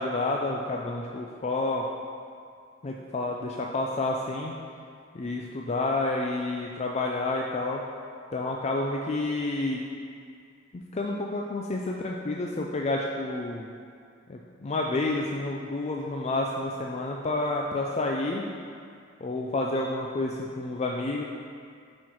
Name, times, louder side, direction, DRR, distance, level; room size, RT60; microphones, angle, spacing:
voice 1, 0.0-1.9 2.8-4.5 5.1-7.8 8.3-9.8 10.7-13.7 14.3-18.4 19.2-21.2, left 2 dB, 35° left, 0 dB, 0.4 m, -29 dB
8.2 x 4.4 x 4.7 m, 2.2 s
head